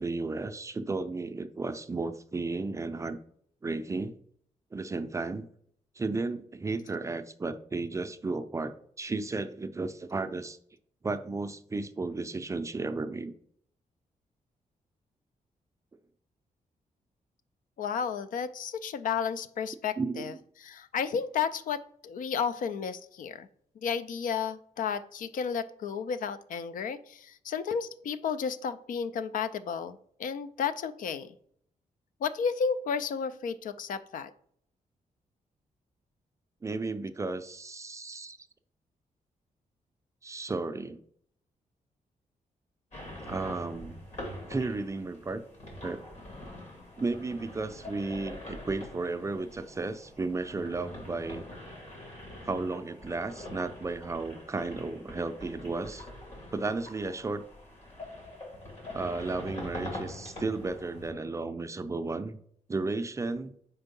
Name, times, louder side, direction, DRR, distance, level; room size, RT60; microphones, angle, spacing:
voice 1, 0.0-3.2 3.6-4.1 4.7-5.5 6.0-10.6 11.0-13.3 20.0-20.4 36.6-38.4 40.2-41.0 43.3-44.0 44.5-45.4 45.8-46.0 47.0-51.5 52.4-56.1 56.5-57.5 58.9-62.4 62.7-63.5, right 3 dB, 20° right, 10 dB, 0.4 m, -34 dB
voice 2, 17.8-20.3 20.6-23.5 23.8-31.4 32.2-34.3, left 6 dB, 70° left, 12 dB, 0.4 m, -32 dB
sound 1, 42.9-61.1, left 1 dB, 55° left, 2.3 m, -44 dB
4.5 x 4.4 x 5.3 m, 0.64 s
cardioid pair, 110°, 14 cm